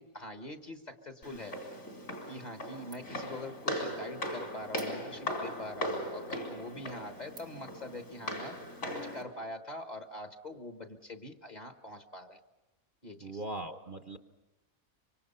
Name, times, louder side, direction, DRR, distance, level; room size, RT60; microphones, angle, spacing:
voice 1, 0.0-1.7 2.3-8.6 8.9-12.4 13.0-13.4, left 1 dB, 35° left, 7 dB, 1.3 m, -44 dB
Walk footsteps, 1.2-9.2, equal, 70° left, 4.7 m, -39 dB
sound 1, 2.3-2.7 2.9-3.3 3.7-3.8 4.7-5.4 6.0-6.1 6.7-6.9 7.3-7.7, right 4 dB, 80° right, 2.3 m, -54 dB
voice 2, 13.2-14.2, right 2 dB, 40° right, 7 dB, 1.0 m, -40 dB
25.5 x 24.0 x 5.6 m, 1.1 s
omnidirectional pair, 1.5 m